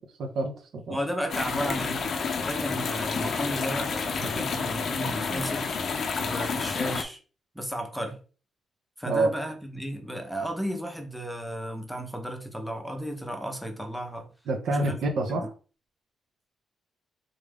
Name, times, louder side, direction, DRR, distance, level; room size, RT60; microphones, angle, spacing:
voice 1, 0.2-1.0 9.0-9.3 14.5-15.5, right 2 dB, 65° right, 0.6 m, -27 dB
voice 2, 0.9-2.0 2.4-5.7 6.2-7.2 7.5-8.2 9.0-14.3 14.7-14.9 15.3-15.4, equal, ahead, 0.6 m, -33 dB
sound 1, 1.3-7.0, left 5 dB, 45° left, 0.5 m, -29 dB
3.7 x 2.4 x 3.3 m
wide cardioid pair, 160°, 0 cm